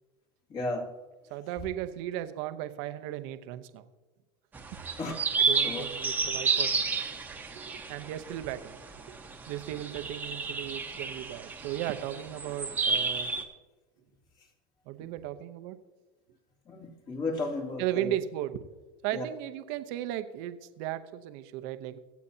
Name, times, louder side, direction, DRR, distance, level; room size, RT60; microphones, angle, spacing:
voice 1, 0.5-0.9 5.0-5.2 5.6-5.8 15.0-15.1 16.7-18.1 19.1-19.2, left 2 dB, 35° left, 0 dB, 2.4 m, -34 dB
voice 2, 1.3-3.9 4.7-4.8 5.4-7.0 7.6-7.7 7.9-8.8 9.1-9.2 9.5-13.3 14.9-15.8 17.8-18.6 19.0-22.0, right 13 dB, 65° right, 10 dB, 0.9 m, -36 dB
sound 1, 4.5-13.4, right 4 dB, 15° right, 1.2 m, -31 dB
24.5 x 8.4 x 2.8 m, 1.3 s
supercardioid pair, 135°, 12 cm